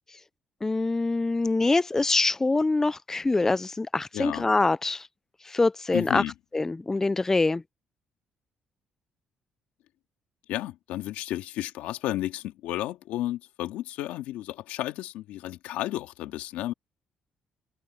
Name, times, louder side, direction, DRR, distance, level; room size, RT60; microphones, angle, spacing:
voice 1, 0.6-5.1 5.5-6.2 6.5-7.6, left 3 dB, 20° left, 0.4 m, -24 dB
voice 2, 4.1-4.5 5.9-6.3 10.5-16.7, left 14 dB, 90° left, 2.4 m, -32 dB
cardioid pair, 85°, 2 cm